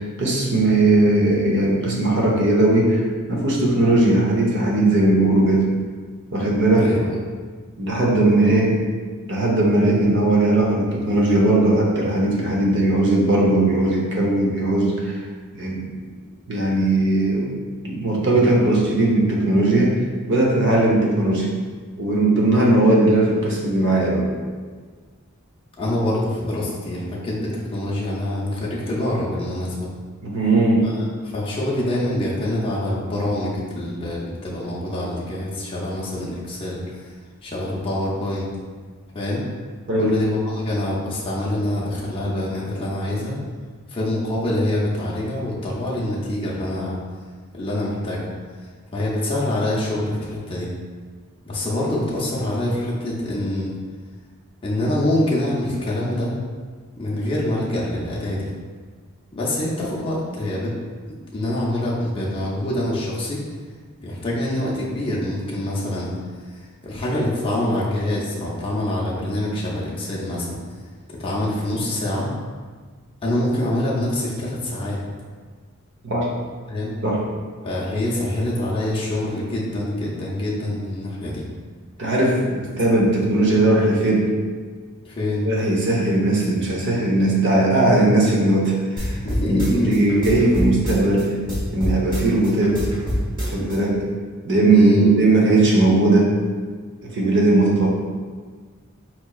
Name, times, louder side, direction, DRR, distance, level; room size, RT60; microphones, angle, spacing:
voice 1, 0.0-5.7 6.3-6.9 7.8-8.7 9.3-15.2 15.5-15.9 16.5-17.5 17.8-20.0 20.3-21.5 22.0-24.3 30.2-30.9 39.9-40.2 76.0-76.3 77.0-77.2 82.0-84.3 85.4-91.3 91.7-92.9 93.4-94.0 94.4-96.3 97.0-97.9, right 2 dB, 55° right, -3 dB, 0.7 m, -18 dB
voice 2, 6.7-7.2 25.8-29.9 30.8-31.0 31.3-37.1 37.4-38.5 39.1-39.5 40.0-43.4 43.9-47.0 47.5-48.3 48.9-50.7 51.5-53.8 54.6-56.4 56.9-58.5 59.3-60.7 61.3-63.4 64.0-66.1 66.5-70.6 71.2-72.3 73.2-75.0 76.7-76.9 77.6-81.4 83.4-83.6 85.0-85.5 89.2-89.9 94.7-95.1, left 1 dB, 25° left, -6 dB, 0.5 m, -25 dB
sound 1, 89.0-91.2 91.5-93.8, equal, 20° right, 1.0 m, -25 dB
4.4 x 2.9 x 2.3 m, 1.5 s
head